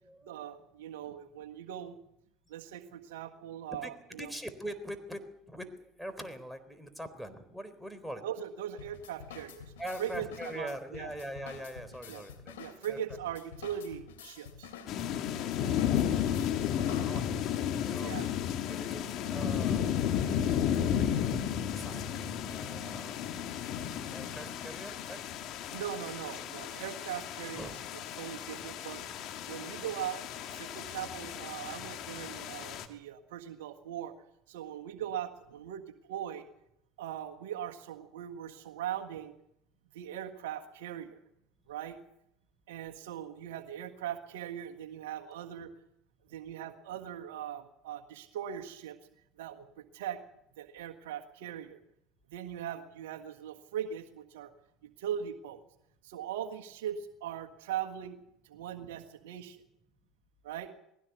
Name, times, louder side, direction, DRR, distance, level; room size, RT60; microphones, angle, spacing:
voice 1, 0.2-2.0 2.5-4.3 8.2-9.7 10.0-10.3 10.5-11.1 12.1-12.2 12.6-14.7 18.0-18.3 25.7-27.7 28.2-29.0 29.5-34.1 34.5-36.5 37.0-39.3 39.9-41.2 41.7-42.0 42.7-45.7 46.3-49.0 49.4-50.2 50.6-51.8 52.3-54.5 54.8-55.6 56.0-58.2 58.4-59.6 60.4-60.7, right 10 dB, 80° right, 5 dB, 1.6 m, -40 dB
voice 2, 4.2-5.2 5.5-8.2 9.8-12.5 12.9-13.0 15.8-16.5 16.8-18.1 18.7-19.9 20.9-21.3 21.7-23.2 24.1-25.2 27.5-27.8, equal, ahead, 8 dB, 3.9 m, -43 dB
sound 1, 8.8-17.7, left 7 dB, 85° left, 2.9 m, -49 dB
sound 2, 14.9-32.9, left 9 dB, 55° left, 2.1 m, -33 dB
20.5 x 16.5 x 8.2 m, 0.79 s
hypercardioid pair, 75°, 0 cm